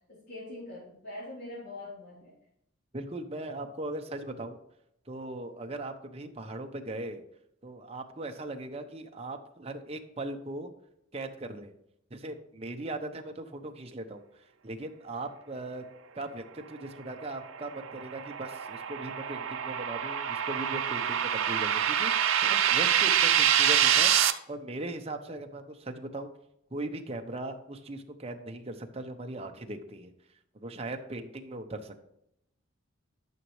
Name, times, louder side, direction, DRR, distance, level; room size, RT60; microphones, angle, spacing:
voice 1, 0.1-2.3, left 2 dB, 55° left, -9 dB, 3.8 m, -43 dB
voice 2, 2.9-4.6 5.1-7.2 7.6-10.7 11.1-11.7 12.1-15.9 16.1-22.1 22.4-26.3 26.7-30.1 30.5-32.0, right 2 dB, 30° right, 5 dB, 0.9 m, -39 dB
sound 1, 17.5-24.3, right 9 dB, 80° right, 0.7 m, -26 dB
12.0 x 6.3 x 3.2 m, 0.78 s
head